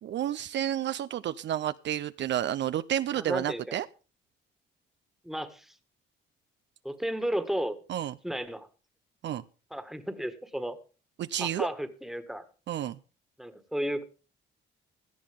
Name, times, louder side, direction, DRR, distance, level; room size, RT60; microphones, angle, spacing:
voice 1, 0.0-3.9 7.9-8.1 9.2-9.4 11.2-11.7 12.7-13.0, right 11 dB, 65° right, 13 dB, 0.6 m, -30 dB
voice 2, 3.1-3.8 5.2-5.7 6.8-7.8 8.2-8.7 9.7-10.8 11.4-12.4 13.4-14.0, equal, ahead, 11 dB, 1.7 m, -33 dB
17.0 x 12.5 x 3.6 m, 0.35 s
cardioid pair, 90°, 20 cm